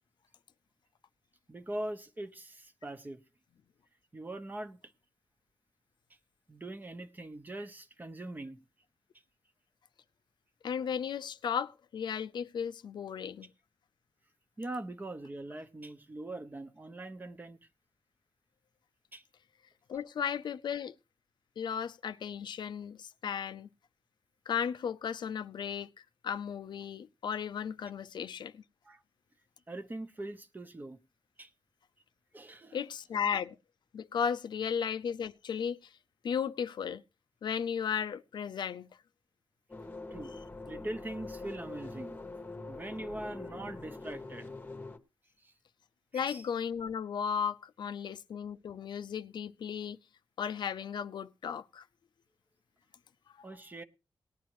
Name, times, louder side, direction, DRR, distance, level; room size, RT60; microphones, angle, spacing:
voice 1, 1.5-3.2 4.1-4.8 6.5-8.6 14.6-17.6 19.1-19.2 28.8-29.0 29.7-31.0 31.4-31.5 32.3-32.8 40.1-40.3 40.7-42.2 42.7-44.5 45.4-45.5 46.1-46.4 53.4-53.8, right 1 dB, 25° right, 1.0 m, -42 dB
voice 2, 10.6-13.5 19.9-20.9 21.6-23.7 24.5-25.9 26.2-28.6 32.7-33.6 33.9-35.9 36.2-37.0 37.4-38.9 46.1-50.0 50.4-51.8, left 7 dB, 85° left, 0.5 m, -35 dB
sound 1, 39.7-45.0, left 3 dB, 25° left, 1.1 m, -44 dB
18.5 x 10.0 x 3.1 m
wide cardioid pair, 145°, 7 cm